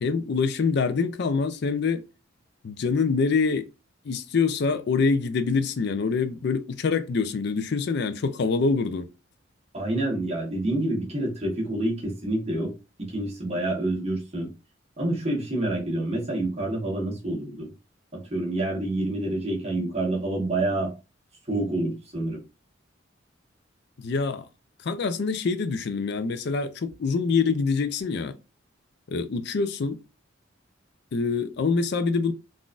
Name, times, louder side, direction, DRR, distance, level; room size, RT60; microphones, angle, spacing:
voice 1, 0.0-2.0 2.6-3.7 4.0-9.1 24.0-24.5 24.8-28.3 29.1-30.0 31.1-32.3, left 4 dB, 60° left, 0.4 m, -25 dB
voice 2, 9.7-12.7 13.0-14.5 15.0-17.7 18.1-20.9 21.5-22.4, right 1 dB, 35° right, 1.2 m, -27 dB
3.8 x 2.5 x 2.4 m
head